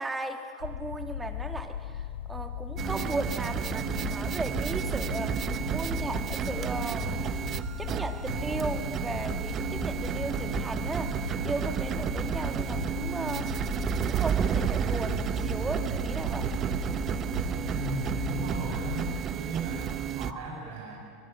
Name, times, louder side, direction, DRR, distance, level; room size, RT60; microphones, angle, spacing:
voice 1, 0.0-5.4 5.7-7.2 7.8-11.2 11.4-13.5 14.0-16.6, right 2 dB, 15° right, 6 dB, 2.7 m, -36 dB
sound 1, 0.6-19.2, left 10 dB, 75° left, 0.7 m, -37 dB
sound 2, 2.8-20.3, right 9 dB, 40° right, 1.0 m, -31 dB
voice 2, 17.7-21.0, right 3 dB, 65° right, -1 dB, 7.6 m, -36 dB
25.5 x 21.5 x 7.5 m, 2.2 s
hypercardioid pair, 85°, 0 cm